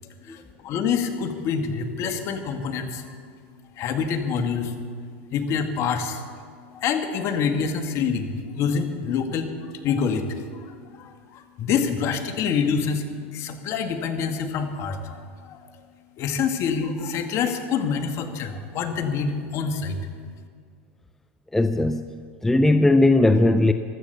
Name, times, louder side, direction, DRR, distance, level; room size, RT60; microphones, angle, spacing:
voice 1, 0.2-3.2 3.8-4.8 5.3-6.2 6.7-13.1 13.3-15.8 16.2-20.0, left 6 dB, 45° left, 6 dB, 1.8 m, -26 dB
voice 2, 21.5-22.0 22.4-23.7, left 2 dB, 5° left, 9 dB, 0.5 m, -18 dB
15.5 x 12.5 x 6.8 m, 2.1 s
supercardioid pair, 120°, 7 cm